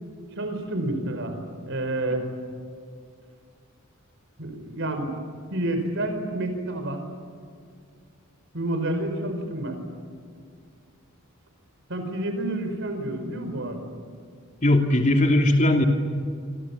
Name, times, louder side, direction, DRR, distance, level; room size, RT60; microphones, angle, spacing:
voice 1, 0.3-1.4 1.7-2.3 4.4-5.2 5.5-7.0 8.5-9.8 11.9-13.8, right 1 dB, 65° right, 6 dB, 4.8 m, -29 dB
voice 2, 14.6-15.9, left 1 dB, 35° left, 3 dB, 2.9 m, -19 dB
27.5 x 26.5 x 7.3 m, 2.2 s
head